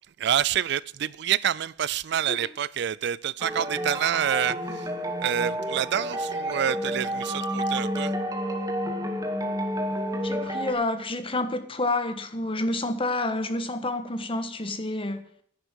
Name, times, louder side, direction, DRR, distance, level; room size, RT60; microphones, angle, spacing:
voice 1, 0.2-4.9 5.2-8.1, right 9 dB, 65° right, 0.4 m, -27 dB
sound 1, 3.4-10.7, equal, 20° right, 1.8 m, -30 dB
voice 2, 10.2-15.3, left 2 dB, 30° left, 1.3 m, -29 dB
10.5 x 10.5 x 6.4 m
head